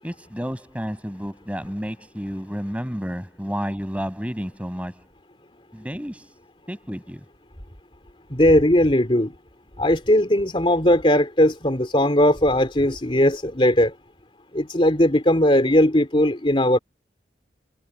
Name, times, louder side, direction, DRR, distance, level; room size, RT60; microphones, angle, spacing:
voice 1, 0.0-5.0 5.7-6.3 6.7-7.2, equal, 5° right, 7.9 m, -31 dB
voice 2, 8.3-9.3 9.8-13.9 14.5-16.8, left 1 dB, 30° left, 3.5 m, -18 dB
head